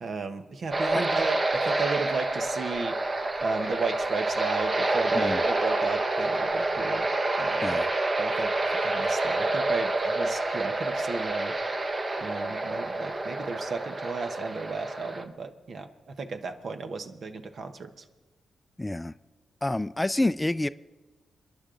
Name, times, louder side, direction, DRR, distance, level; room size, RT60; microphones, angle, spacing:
voice 1, 0.0-2.9 3.4-7.1 7.4-7.8 8.2-8.5 8.8-11.5 12.2-17.9, right 4 dB, 65° right, 1.2 m, -34 dB
sound 1, 0.7-15.2, right 2 dB, 45° right, 1.3 m, -28 dB
voice 2, 18.8-19.1 19.6-20.7, left 1 dB, 15° left, 0.4 m, -28 dB
29.5 x 10.5 x 3.9 m
cardioid pair, 60°, 0 cm